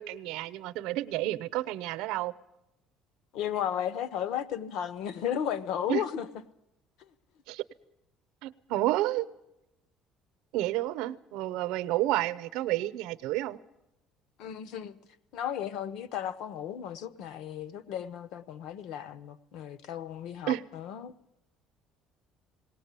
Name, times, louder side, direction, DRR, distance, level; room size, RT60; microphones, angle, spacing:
voice 1, 0.0-2.3 5.9-6.0 7.5-7.6 8.4-9.3 10.5-13.6 20.5-20.6, right 15 dB, 80° right, 0.7 m, -30 dB
voice 2, 3.3-6.3 14.4-15.0 15.3-21.1, left 9 dB, 60° left, 0.9 m, -34 dB
19.5 x 18.5 x 8.3 m
cardioid pair, 175°, 0 cm